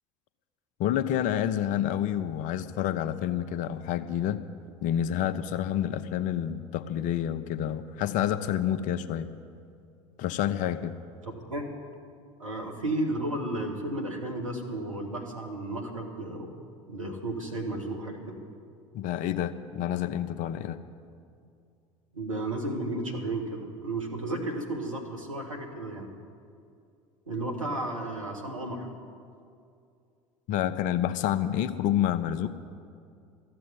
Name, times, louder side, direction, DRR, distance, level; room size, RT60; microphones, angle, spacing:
voice 1, 0.8-4.4 4.8-9.3 10.2-11.0 18.9-20.8 30.5-32.5, left 10 dB, 50° left, 12 dB, 0.7 m, -28 dB
voice 2, 11.2-11.7 12.4-16.5 16.9-18.4 22.1-26.1 27.3-28.9, right 1 dB, 90° right, 1 dB, 1.7 m, -33 dB
13.5 x 7.7 x 9.8 m, 2.4 s
figure-of-eight pair, 70°, 17 cm